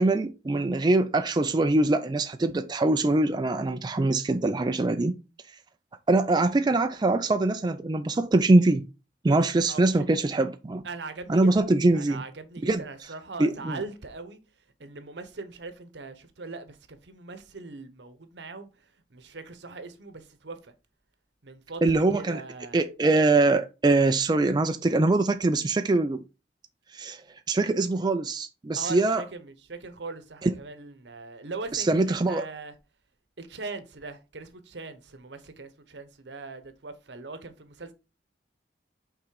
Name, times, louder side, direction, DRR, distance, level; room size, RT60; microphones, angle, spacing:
voice 1, 0.0-5.1 6.1-8.8 9.2-10.8 11.3-12.2 12.6-12.8 13.4-13.8 21.8-22.4 22.7-26.2 26.9-27.2 27.5-29.2 30.4-30.5 31.7-32.5, right 2 dB, 25° right, 0.4 m, -23 dB
voice 2, 9.7-10.0 10.8-11.5 11.9-14.4 14.8-18.7 19.1-20.7 21.4-22.8 28.8-32.7 33.4-37.9, right 3 dB, 75° right, 0.9 m, -40 dB
5.8 x 3.8 x 4.7 m
head